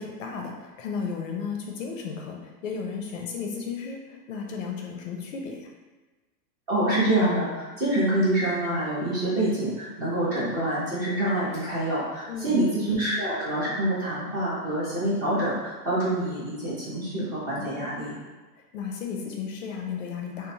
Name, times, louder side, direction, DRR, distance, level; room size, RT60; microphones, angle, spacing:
voice 1, 0.0-5.7 12.3-12.6 17.6-17.8 18.7-20.5, left 5 dB, 55° left, 1 dB, 0.5 m, -34 dB
voice 2, 6.7-18.1, right 1 dB, 20° right, -9 dB, 0.5 m, -26 dB
3.0 x 2.1 x 2.6 m, 1.2 s
supercardioid pair, 145°, 49 cm